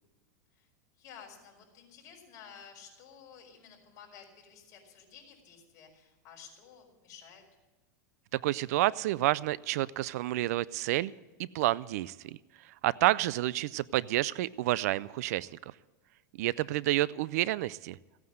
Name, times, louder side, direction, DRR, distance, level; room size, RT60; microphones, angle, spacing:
voice 1, 1.0-7.4 16.5-16.7, left 7 dB, 40° left, -1 dB, 5.1 m, -53 dB
voice 2, 8.3-11.1 11.4-12.4 12.6-15.5 16.4-18.0, right 16 dB, 65° right, 21 dB, 0.4 m, -29 dB
16.5 x 9.4 x 7.8 m, 1.2 s
supercardioid pair, 150°, 9 cm